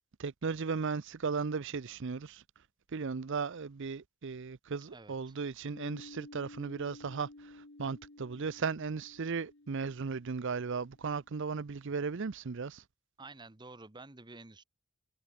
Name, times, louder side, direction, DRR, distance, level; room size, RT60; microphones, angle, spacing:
voice 1, 0.2-2.4 2.9-12.8, right 5 dB, 60° right, 0.6 m, -36 dB
sound 1, 5.7-11.2, left 2 dB, 55° left, 1.6 m, -54 dB
voice 2, 13.2-14.6, right 3 dB, 20° right, 1.1 m, -50 dB
head